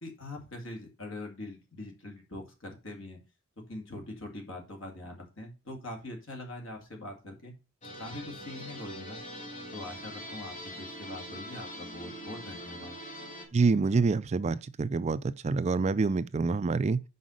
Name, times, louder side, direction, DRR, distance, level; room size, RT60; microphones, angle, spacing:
voice 1, 0.0-3.2 3.6-7.6 8.0-9.2 9.7-13.0, left 1 dB, 70° left, 2.3 m, -43 dB
sound 1, 7.8-13.5, equal, 40° left, 2.0 m, -43 dB
voice 2, 13.5-17.0, right 4 dB, 35° right, 0.4 m, -27 dB
5.6 x 5.0 x 6.3 m
head